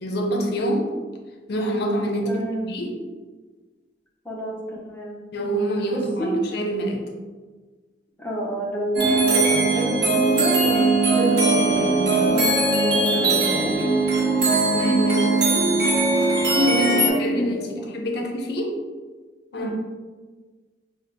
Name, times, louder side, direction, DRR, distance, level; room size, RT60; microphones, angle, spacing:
voice 1, 0.0-0.9 1.5-3.0 5.3-7.1 14.7-15.4 16.6-18.7 19.5-19.7, equal, 65° left, 2 dB, 0.5 m, -26 dB
voice 2, 2.2-2.7 4.2-5.2 5.9-6.4 8.2-13.8 16.9-17.9 19.6-19.7, right 1 dB, 10° left, -4 dB, 0.7 m, -29 dB
sound 1, 9.0-17.1, right 2 dB, 65° right, 0.7 m, -20 dB
3.3 x 2.0 x 4.1 m, 1.4 s
head